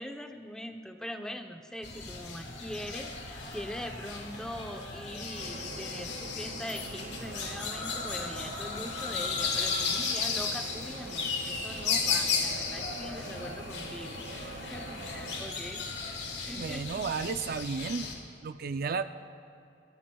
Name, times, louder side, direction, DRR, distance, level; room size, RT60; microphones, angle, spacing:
voice 1, 0.0-15.9 16.4-17.0, equal, 5° left, 5 dB, 0.7 m, -42 dB
sound 1, 1.8-18.1, left 5 dB, 75° left, 1.9 m, -35 dB
sound 2, 5.4-15.4, right 3 dB, 85° right, 0.8 m, -45 dB
voice 2, 16.6-18.1 18.4-19.0, right 5 dB, 55° right, 11 dB, 0.4 m, -33 dB
22.0 x 15.0 x 2.3 m, 2.7 s
head